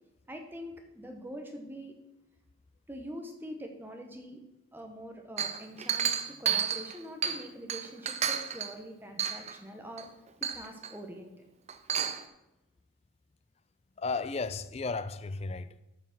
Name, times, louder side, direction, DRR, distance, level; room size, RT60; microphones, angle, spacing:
voice 1, 0.3-1.9 2.9-4.4 4.7-10.1 10.4-11.3, equal, 10° right, 1.0 m, -44 dB
Chink clink, 5.4-7.4 7.7-8.7 9.2-9.6 10.0-10.1 10.4-10.9 11.7-12.2, right 8 dB, 35° right, 0.5 m, -31 dB
voice 2, 14.0-15.8, left 4 dB, 30° left, 0.4 m, -34 dB
8.9 x 5.9 x 6.0 m
head